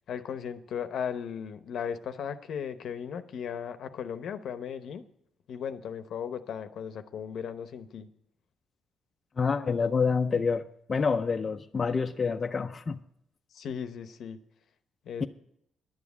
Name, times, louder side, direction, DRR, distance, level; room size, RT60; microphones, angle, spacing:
voice 1, 0.0-5.1 5.5-8.1 13.5-14.4 15.0-15.3, left 7 dB, 70° left, 0.8 m, -36 dB
voice 2, 9.4-13.0, left 5 dB, 35° left, 0.5 m, -27 dB
11.0 x 7.3 x 8.3 m
cardioid pair, 90°, 0 cm